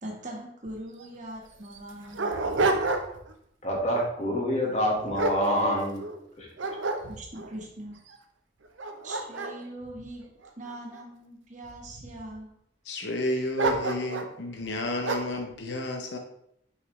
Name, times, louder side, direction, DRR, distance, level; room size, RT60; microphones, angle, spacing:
voice 1, 0.0-2.4 7.1-8.0 9.0-10.3 10.6-12.5, right 1 dB, 40° right, -1 dB, 1.5 m, -41 dB
Dog, 0.7-0.8 1.0-1.1 1.7-3.3 3.7-4.1 4.6-6.1 6.6-7.5 8.1-8.2 8.6-11.0 11.6-12.3 13.5-14.4 15.0-15.4, right 3 dB, 85° right, 0.8 m, -30 dB
voice 2, 3.6-6.0 6.4-6.5, equal, 35° left, -2 dB, 1.7 m, -26 dB
voice 3, 12.8-16.2, left 1 dB, 65° left, 3 dB, 0.8 m, -31 dB
6.4 x 5.7 x 3.2 m, 0.73 s
head